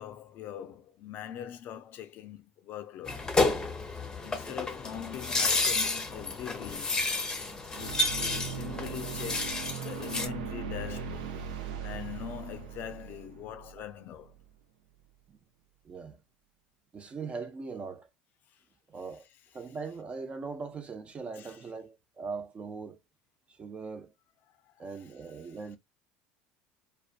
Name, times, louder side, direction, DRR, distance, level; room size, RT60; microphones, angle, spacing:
voice 1, 0.0-3.3 3.9-7.0 7.7-14.4 18.5-18.6 21.4-21.6 24.5-25.1, left 10 dB, 55° left, 0.4 m, -43 dB
sound 1, 3.1-10.3, left 3 dB, 20° left, 0.7 m, -31 dB
sound 2, 7.8-14.4, right 6 dB, 90° right, 0.4 m, -39 dB
voice 2, 15.8-16.2 16.9-18.1 18.9-19.3 19.5-23.0 23.5-24.1 24.8-25.8, right 4 dB, 30° right, 0.5 m, -40 dB
2.5 x 2.2 x 2.4 m
supercardioid pair, 105°, 4 cm